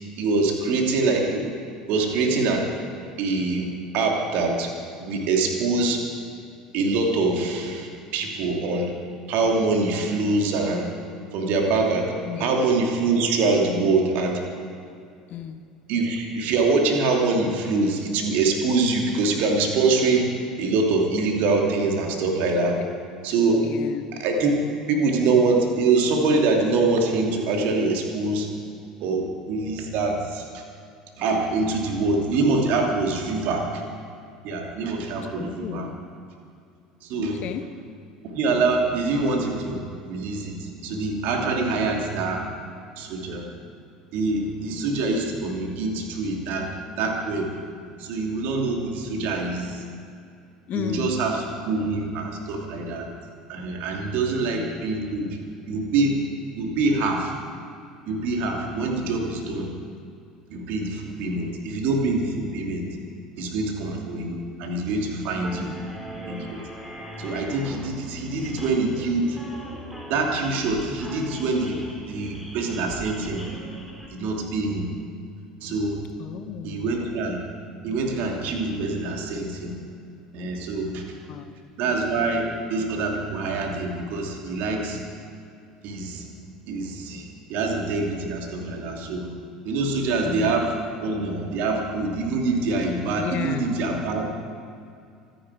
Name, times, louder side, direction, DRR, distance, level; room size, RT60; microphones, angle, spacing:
voice 1, 0.2-1.4 1.9-2.7 3.2-4.7 5.0-6.0 6.7-8.9 9.3-10.9 11.3-14.4 15.9-20.3 20.6-22.8 23.2-23.7 24.1-24.5 24.9-28.5 29.0-30.6 31.2-33.6 34.4-35.9 37.0-37.4 38.3-42.4 43.0-43.5 44.1-46.7 47.0-47.5 47.9-49.8 50.7-53.1 53.5-55.4 55.7-56.2 56.6-57.3 58.1-59.7 60.5-62.9 63.4-65.7 66.3-66.6 67.2-69.4 70.1-71.8 72.1-73.4 74.1-74.9 75.6-76.0 76.6-77.4 77.8-79.7 80.3-81.0 81.8-85.0 85.8-86.3 86.7-89.3 89.6-90.7 91.0-94.3, right 3 dB, 50° right, 1 dB, 2.8 m, -24 dB
voice 2, 12.3-12.6 15.3-15.6 23.6-24.1 35.4-36.0 37.2-37.6 50.7-51.1 54.4-54.8 65.6-65.8 76.2-76.9 81.2-81.6 90.2-90.6 93.2-93.7, left 8 dB, 45° left, 9 dB, 0.9 m, -33 dB
sound 1, 65.4-74.1, right 1 dB, 5° right, 3.4 m, -40 dB
24.5 x 10.0 x 4.9 m, 2.4 s
figure-of-eight pair, 70°, 4 cm